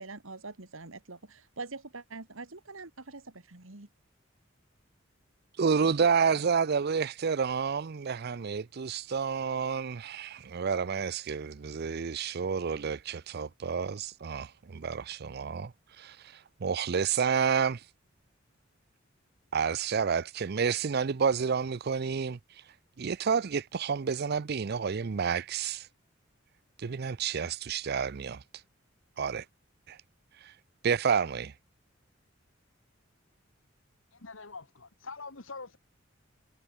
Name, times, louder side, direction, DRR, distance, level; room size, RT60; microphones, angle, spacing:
voice 1, 0.0-3.9, right 3 dB, 90° right, 2.2 m, -44 dB
voice 2, 5.6-15.7 16.0-17.8 19.5-22.4 23.0-25.9 26.8-28.4 29.2-29.4 29.9-30.0 30.4-30.5 30.8-31.5, right 6 dB, 55° right, 0.5 m, -30 dB
voice 3, 34.1-35.8, left 4 dB, 75° left, 2.1 m, -44 dB
head